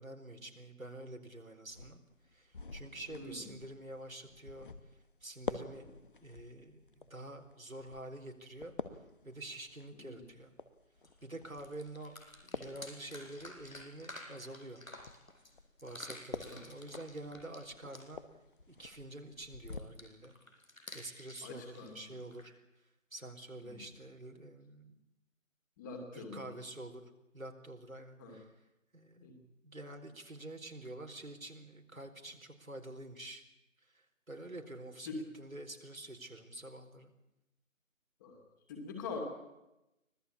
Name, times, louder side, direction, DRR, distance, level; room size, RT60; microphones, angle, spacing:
voice 1, 0.0-2.0 2.3-4.7 5.2-5.9 6.2-8.7 9.2-10.5 11.2-12.1 12.4-14.8 15.8-18.2 18.7-20.4 20.9-22.5 23.1-25.0 26.1-27.0 27.3-28.5 28.9-29.3 29.6-33.4 33.9-37.1, right 1 dB, 90° right, 4 dB, 4.5 m, -47 dB
sound 1, 1.7-19.8, left 4 dB, 40° left, 1.3 m, -49 dB
voice 2, 3.1-3.5 9.9-10.2 16.4-16.7 21.4-22.0 23.6-23.8 25.8-26.5 28.2-28.4 29.2-29.4 35.1-35.2 38.2-38.4 38.7-39.2, left 4 dB, 15° left, 3 dB, 2.7 m, -44 dB
sound 2, 11.0-11.1 11.4-15.5 15.8-18.3 19.7-22.5, left 1 dB, 85° left, 5.6 m, -51 dB
25.0 x 17.5 x 8.5 m, 0.92 s
figure-of-eight pair, 155°, 40 cm